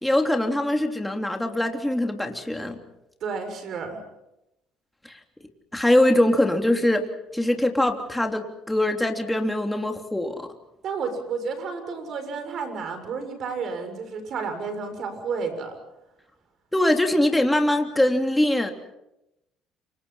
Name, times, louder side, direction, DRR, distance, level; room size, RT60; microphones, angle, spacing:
voice 1, 0.0-2.8 5.1-5.2 5.7-7.1 7.3-10.5 16.7-18.7, left 1 dB, 5° left, 4 dB, 3.3 m, -22 dB
voice 2, 3.2-4.0 10.8-15.8, right 5 dB, 60° right, 8 dB, 6.7 m, -31 dB
28.0 x 26.0 x 5.7 m, 0.88 s
supercardioid pair, 80°, 0 cm